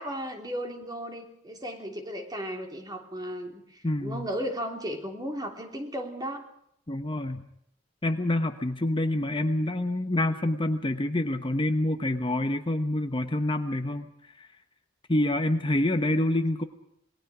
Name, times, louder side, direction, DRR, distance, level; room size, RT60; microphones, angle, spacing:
voice 1, 0.0-6.4, equal, 20° right, 3 dB, 3.2 m, -35 dB
voice 2, 3.8-4.3 6.9-7.5 8.0-14.0 14.4-14.5 15.1-16.6, left 1 dB, 25° left, 7 dB, 1.0 m, -27 dB
27.0 x 21.0 x 5.0 m, 0.72 s
head